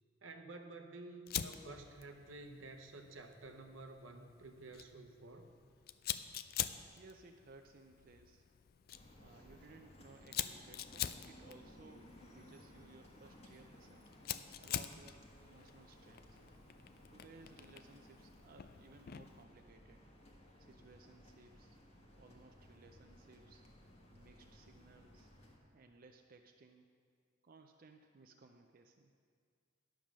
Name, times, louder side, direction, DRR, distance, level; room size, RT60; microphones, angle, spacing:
voice 1, 0.2-5.5, right 2 dB, 80° right, 5 dB, 0.9 m, -51 dB
Fire, 1.3-19.4, left 10 dB, 50° left, 0.4 m, -46 dB
voice 2, 7.0-8.4 9.2-14.1 14.6-16.4 17.1-20.0 20.6-21.8 22.2-23.6 24.1-25.3 25.7-26.9 27.4-29.1, right 3 dB, 45° right, 4 dB, 0.5 m, -61 dB
sound 1, 8.9-25.6, left 1 dB, 35° left, 1.3 m, -60 dB
10.5 x 7.3 x 6.1 m, 2.1 s
head